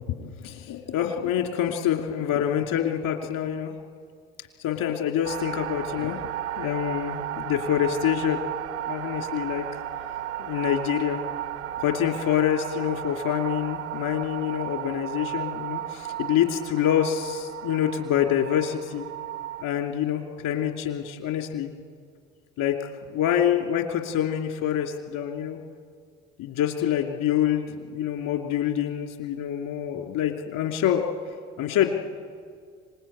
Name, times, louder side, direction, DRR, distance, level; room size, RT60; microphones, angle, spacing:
voice 1, 0.0-3.7 4.6-6.2 6.6-8.4 8.9-9.6 10.4-11.2 11.8-19.1 19.6-21.7 22.6-22.8 23.1-25.6 26.4-31.1 31.6-31.9, left 10 dB, 65° left, 4 dB, 2.7 m, -26 dB
sound 1, 5.2-19.6, right 11 dB, 85° right, 0.8 m, -34 dB
26.0 x 20.0 x 8.6 m, 2.1 s
hypercardioid pair, 60°, 34 cm